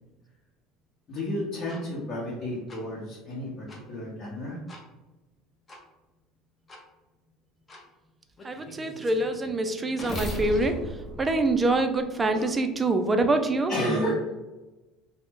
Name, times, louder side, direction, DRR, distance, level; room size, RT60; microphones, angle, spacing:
voice 1, 1.1-4.6 12.3-12.4 13.7-14.3, equal, 45° left, -7 dB, 1.0 m, -31 dB
sound 1, 1.7-1.8 2.7-2.8 3.7-3.8 4.7-4.8 5.7-5.8 6.7-6.8 7.7-7.8 8.4-12.3, equal, 25° left, 0.6 m, -38 dB
voice 2, 8.4-10.9 11.2-13.7, right 2 dB, 20° right, 7 dB, 0.4 m, -25 dB
2.5 x 2.1 x 3.6 m, 1.1 s
supercardioid pair, 110°, 0 cm